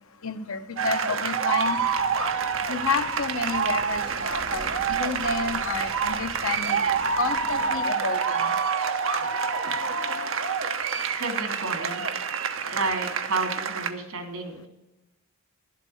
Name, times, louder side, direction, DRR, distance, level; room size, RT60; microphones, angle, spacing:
voice 1, 0.2-1.8 2.7-8.5, left 4 dB, 80° left, 8 dB, 1.0 m, -30 dB
sound 1, 0.8-13.9, right 6 dB, 65° right, 0.9 m, -27 dB
sound 2, 1.6-7.8, equal, 5° left, 1.3 m, -45 dB
voice 2, 11.0-12.2 12.6-14.7, right 3 dB, 90° right, 5 dB, 2.9 m, -31 dB
11.5 x 8.2 x 6.5 m, 0.95 s
head